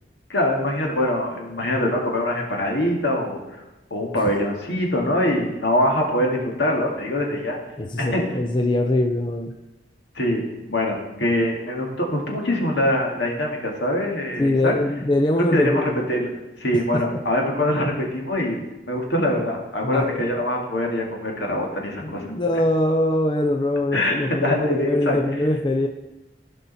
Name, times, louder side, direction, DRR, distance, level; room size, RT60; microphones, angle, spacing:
voice 1, 0.3-3.4 3.9-7.6 8.0-8.2 10.2-10.4 10.7-14.7 15.5-16.3 16.6-22.3 23.9-25.2, left 1 dB, 80° left, 0 dB, 2.2 m, -23 dB
voice 2, 7.8-9.5 14.4-16.0 16.9-17.0 19.8-20.2 21.9-25.9, left 1 dB, 25° left, 3 dB, 0.5 m, -23 dB
16.0 x 5.4 x 4.2 m, 1.0 s
head